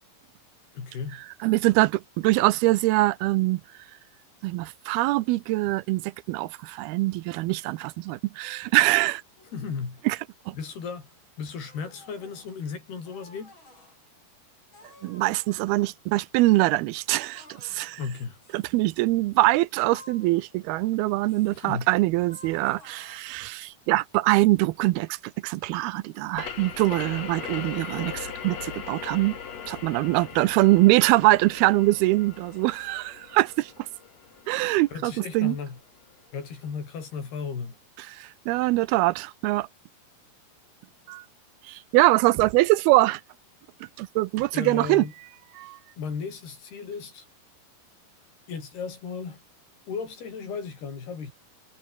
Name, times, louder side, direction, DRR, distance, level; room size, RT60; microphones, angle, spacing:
voice 1, 0.7-1.2 9.5-10.0 10.5-11.1 11.4-13.5 18.0-18.4 21.5-21.9 34.9-35.8 36.3-37.8 44.5-45.1 46.0-47.3 48.5-49.4 49.9-51.3, left 5 dB, 90° left, 7.5 m, -35 dB
voice 2, 1.4-3.6 4.4-9.2 10.1-10.2 10.5-10.6 15.0-18.0 18.5-25.2 25.4-29.4 29.7-33.7 34.5-35.6 38.0-39.7 41.1-41.2 41.6-43.2 44.0-45.1 45.6-45.8, right 19 dB, 85° right, 2.6 m, -23 dB
sound 1, 8.4-8.8 9.4-9.8 10.4-11.0 11.7-12.6 13.0-14.0 14.7-16.0 16.3-16.6 17.3-18.1 18.4-18.9 19.8-20.9 21.3-21.7 22.3-23.7, left 2 dB, 30° left, 8.8 m, -53 dB
sound 2, 26.3-35.7, left 7 dB, 45° left, 3.3 m, -39 dB
omnidirectional pair, 4.4 m